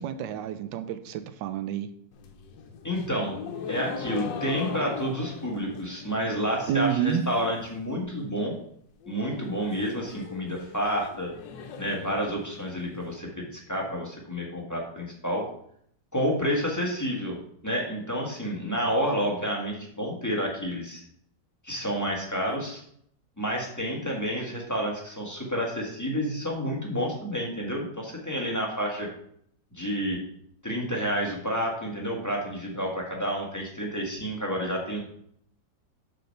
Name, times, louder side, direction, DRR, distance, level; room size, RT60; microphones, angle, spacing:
voice 1, 0.0-1.9 6.7-7.2, right 8 dB, 85° right, 9 dB, 1.3 m, -29 dB
sound 1, 2.1-7.2 7.4-8.0 8.3-8.4 8.6-8.7 9.0-13.0, left 6 dB, 90° left, 1.5 m, -40 dB
voice 2, 2.8-3.4 3.7-8.5 9.1-11.3 11.8-15.5 16.1-17.4 17.6-21.0 21.6-22.8 23.4-29.1 29.7-30.2 30.6-35.0, equal, 10° left, -2 dB, 1.4 m, -29 dB
6.5 x 4.3 x 5.4 m, 0.66 s
omnidirectional pair, 1.9 m